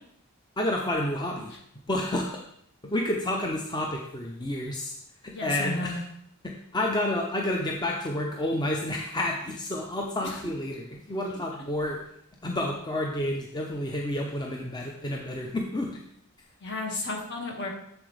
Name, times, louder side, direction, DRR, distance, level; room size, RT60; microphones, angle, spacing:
voice 1, 0.6-1.5 1.9-2.4 2.8-5.0 5.2-6.0 6.4-12.0 12.4-16.0, left 1 dB, 20° left, 0 dB, 0.6 m, -30 dB
voice 2, 5.3-6.0 10.2-10.4 11.3-11.4 16.6-17.7, left 2 dB, 55° left, 0 dB, 1.8 m, -33 dB
7.6 x 7.0 x 3.3 m, 0.72 s
head